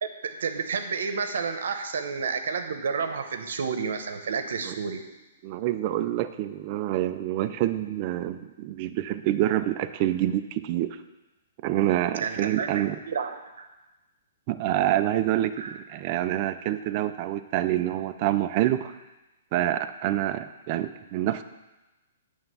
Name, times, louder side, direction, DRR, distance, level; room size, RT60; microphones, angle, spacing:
voice 1, 0.0-5.0 12.1-13.7 15.6-15.8, right 5 dB, 70° right, 7 dB, 0.9 m, -31 dB
voice 2, 5.4-11.0 11.6-13.0 14.5-18.9 19.5-21.4, right 13 dB, 30° right, 9 dB, 0.4 m, -27 dB
9.0 x 3.4 x 6.8 m, 1.1 s
hypercardioid pair, 170°, 0 cm